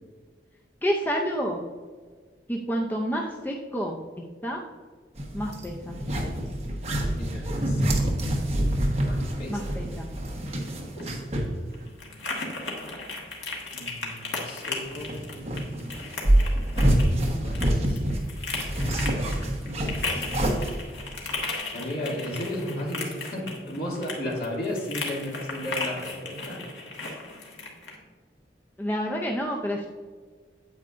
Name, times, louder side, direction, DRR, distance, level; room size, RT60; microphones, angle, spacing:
voice 1, 0.8-1.6 2.5-4.0 4.4-4.6 5.3-5.9 9.5-10.1 28.8-29.9, equal, 10° left, 0 dB, 0.5 m, -29 dB
sound 1, 5.2-11.6 11.8-11.9 14.9-21.4, right 1 dB, 35° right, 1.2 m, -26 dB
voice 2, 7.1-8.2 9.0-9.8 13.7-15.1 17.4-18.1 21.7-26.6, left 1 dB, 55° left, -4 dB, 2.5 m, -34 dB
sound 2, 10.8-28.0, left 3 dB, 80° left, 1.6 m, -36 dB
9.0 x 8.8 x 2.5 m, 1.5 s
head